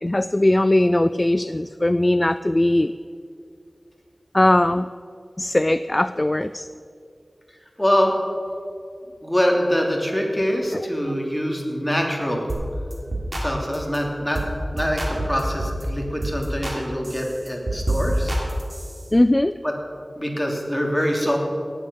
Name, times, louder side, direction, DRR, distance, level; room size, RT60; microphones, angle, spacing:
voice 1, 0.0-2.9 4.3-4.9 5.4-6.7 19.1-19.6, left 1 dB, 30° left, 13 dB, 0.3 m, -19 dB
voice 2, 7.8-8.1 9.2-12.5 13.4-14.4 14.7-18.4 19.6-19.7 20.2-21.4, equal, 10° left, 0 dB, 3.0 m, -24 dB
sound 1, 12.5-12.7 12.9-13.5 13.7-14.0 14.3-14.5 14.8-15.8 16.2-16.8 17.0-19.1, right 1 dB, 40° right, 3.3 m, -27 dB
18.0 x 8.4 x 6.9 m, 2.4 s
wide cardioid pair, 45°, 0 cm